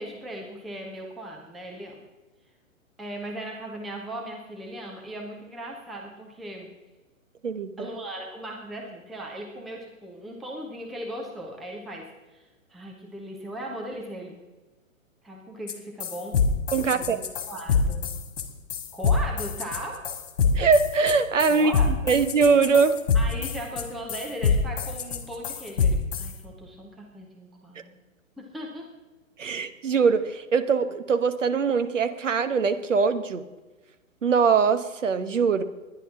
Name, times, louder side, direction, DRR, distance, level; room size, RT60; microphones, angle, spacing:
voice 1, 0.0-2.0 3.0-6.7 7.8-14.4 15.2-16.4 16.8-18.1 18.9-20.0 21.5-22.1 23.1-28.0 28.4-28.9, right 1 dB, ahead, -1 dB, 0.5 m, -38 dB
voice 2, 7.4-7.9 16.7-17.2 20.5-21.7 22.1-23.0 29.4-33.4 34.2-35.6, right 5 dB, 65° right, 9 dB, 1.2 m, -22 dB
sound 1, 15.7-15.8 16.0-26.3, left 5 dB, 45° left, 2.2 m, -25 dB
21.5 x 10.5 x 3.7 m, 1.2 s
figure-of-eight pair, 120°, 41 cm